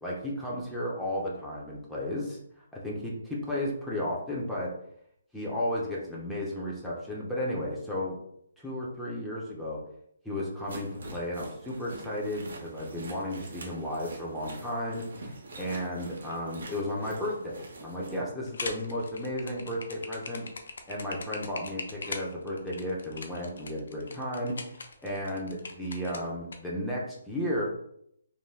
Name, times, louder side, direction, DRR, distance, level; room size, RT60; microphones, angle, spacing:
voice 1, 0.0-2.4 2.7-4.7 5.3-8.2 8.6-9.8 10.2-20.5 20.9-24.5 25.0-27.6, left 1 dB, ahead, -6 dB, 0.6 m, -33 dB
sound 1, 10.6-18.2, right 2 dB, 70° right, 0.7 m, -45 dB
sound 2, 18.4-26.6, left 3 dB, 75° left, 0.4 m, -41 dB
3.0 x 2.7 x 2.2 m, 0.72 s
hypercardioid pair, 150°, 0 cm